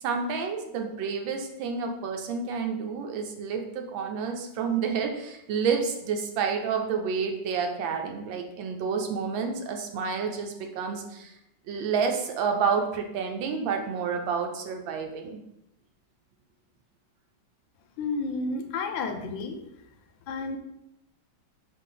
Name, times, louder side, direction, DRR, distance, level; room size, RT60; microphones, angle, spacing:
voice 1, 0.0-11.3 11.7-15.4, right 6 dB, 85° right, 3 dB, 1.4 m, -29 dB
voice 2, 18.0-19.6 20.3-20.6, left 3 dB, 80° left, 6 dB, 1.3 m, -31 dB
4.2 x 3.2 x 3.7 m, 0.85 s
omnidirectional pair, 2.1 m